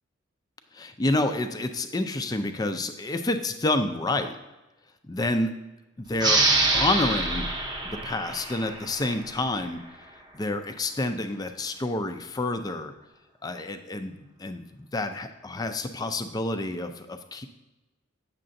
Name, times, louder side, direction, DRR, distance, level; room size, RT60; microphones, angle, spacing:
voice 1, 0.7-4.4 5.1-5.6 6.0-6.4 6.7-7.5 7.8-9.8 10.3-12.9 13.4-17.5, left 2 dB, 20° left, 8 dB, 0.4 m, -29 dB
sound 1, 6.2-9.4, right 2 dB, 20° right, 0.7 m, -25 dB
8.5 x 6.6 x 2.6 m, 1.1 s
head